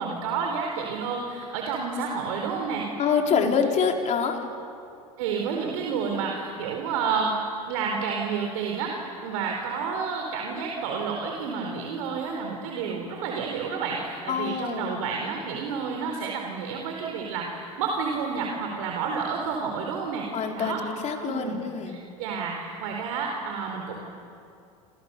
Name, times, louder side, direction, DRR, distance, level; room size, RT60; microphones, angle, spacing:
voice 1, 0.0-2.9 3.3-3.5 5.2-7.3 7.7-20.9 21.3-21.6 21.9-24.0, right 5 dB, 70° right, 1 dB, 3.9 m, -30 dB
voice 2, 3.0-4.4 14.3-15.0 20.3-22.0, left 6 dB, 40° left, 2 dB, 4.2 m, -26 dB
29.0 x 28.0 x 6.9 m, 2.5 s
hypercardioid pair, 85°, 18 cm